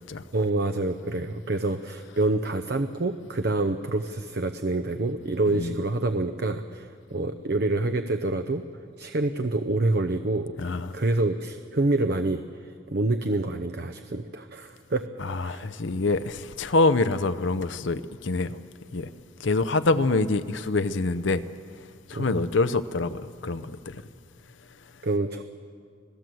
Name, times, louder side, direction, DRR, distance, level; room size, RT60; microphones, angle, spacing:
voice 1, 0.3-8.6 9.0-15.0 15.4-15.7 22.1-22.4 25.0-25.4, right 2 dB, 55° right, 0.7 m, -27 dB
voice 2, 10.6-11.0 15.2-18.6 18.9-19.1 19.4-21.5 22.1-24.0, left 3 dB, 70° left, 0.7 m, -25 dB
26.5 x 17.0 x 7.8 m
head